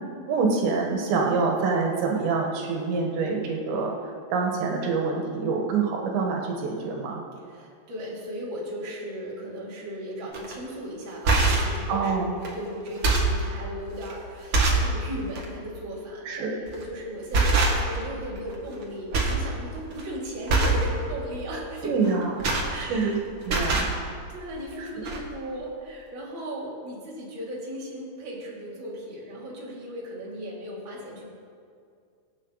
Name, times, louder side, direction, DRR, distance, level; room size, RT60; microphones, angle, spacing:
voice 1, 0.3-4.0 4.3-7.2 11.9-12.3 16.3-16.6 21.8-22.5 22.9-23.2 23.4-23.9 24.8-24.9, right 4 dB, 80° right, 0 dB, 3.6 m, -26 dB
voice 2, 7.5-21.9 22.7-23.2 23.5-23.6 24.3-31.3, equal, 30° right, -6 dB, 3.2 m, -36 dB
sound 1, 10.3-10.5 11.1-11.8 12.4-12.5 12.9-13.4 14.0-14.1 14.5-14.9 15.3-15.5 16.7-16.9 17.3-18.1 18.4-18.8 19.1-19.4 19.8-20.0 20.5-20.9 22.0-23.1 23.4-23.9 24.7-24.8 25.0-25.2, right 3 dB, 55° right, 1.5 m, -23 dB
24.5 x 8.5 x 4.1 m, 2.3 s
omnidirectional pair, 5.0 m